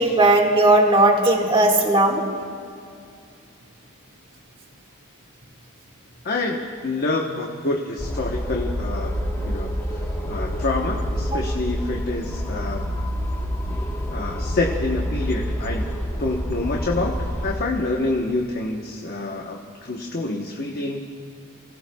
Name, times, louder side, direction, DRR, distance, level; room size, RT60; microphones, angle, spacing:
voice 1, 0.0-2.2, right 2 dB, 25° right, 0 dB, 1.8 m, -17 dB
voice 2, 6.2-9.1 9.4-12.9 14.1-15.9 16.2-21.0, left 2 dB, 45° left, 0 dB, 1.0 m, -27 dB
sound 1, 8.0-17.5, equal, 10° left, 1.3 m, -27 dB
30.0 x 17.0 x 2.3 m, 2.4 s
head